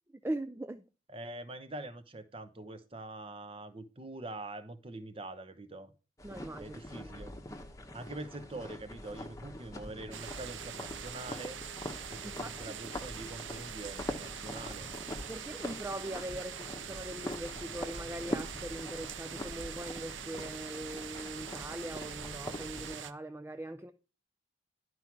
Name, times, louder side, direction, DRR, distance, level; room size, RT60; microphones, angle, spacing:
voice 1, 0.2-0.8 6.2-7.1 12.2-12.8 15.3-23.9, right 1 dB, 10° right, 0.4 m, -41 dB
voice 2, 1.1-5.9 6.6-7.3 7.9-11.6 12.1-14.9, right 2 dB, 30° right, 0.9 m, -44 dB
sound 1, 6.2-23.0, left 1 dB, 15° left, 1.0 m, -43 dB
sound 2, 10.1-23.1, right 9 dB, 70° right, 0.7 m, -44 dB
11.0 x 4.6 x 5.9 m
head